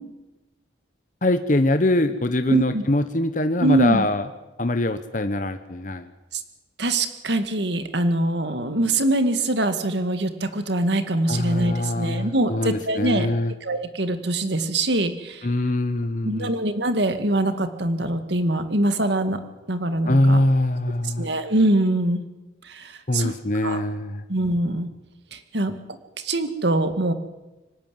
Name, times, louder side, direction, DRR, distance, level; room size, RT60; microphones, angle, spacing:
voice 1, 1.2-4.2 4.6-6.1 11.3-13.5 15.4-16.5 20.1-21.3 23.1-24.2, left 1 dB, 40° left, 9 dB, 1.0 m, -23 dB
voice 2, 2.5-2.8 3.6-4.1 6.3-6.4 6.8-13.3 13.6-15.5 16.2-19.4 19.7-20.4 21.0-22.2 22.6-23.3 23.6-23.8 24.3-24.9 25.3-25.7 26.2-27.1, right 1 dB, 65° right, 9 dB, 2.0 m, -23 dB
24.5 x 13.0 x 9.6 m, 1.0 s
head